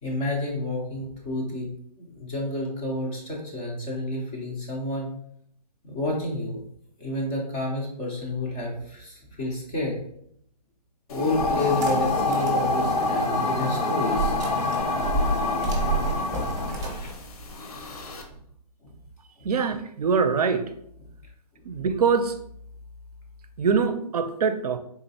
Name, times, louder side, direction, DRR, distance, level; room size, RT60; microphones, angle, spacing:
voice 1, 0.0-1.7 2.0-5.1 5.8-6.6 7.0-10.0 11.1-14.4 19.4-19.5, left 2 dB, 10° left, -2 dB, 0.4 m, -30 dB
sound 1, 11.1-18.2, left 2 dB, 60° left, 0.8 m, -27 dB
sound 2, 11.6-17.1, left 1 dB, 90° left, 0.8 m, -34 dB
sound 3, 11.6-12.6 13.1-13.2 14.1-18.4, right 3 dB, 20° right, 0.7 m, -30 dB
voice 2, 19.4-20.7 21.7-22.3 23.6-24.8, right 5 dB, 65° right, 9 dB, 0.5 m, -23 dB
3.8 x 3.0 x 2.7 m, 0.70 s
hypercardioid pair, 155°, 21 cm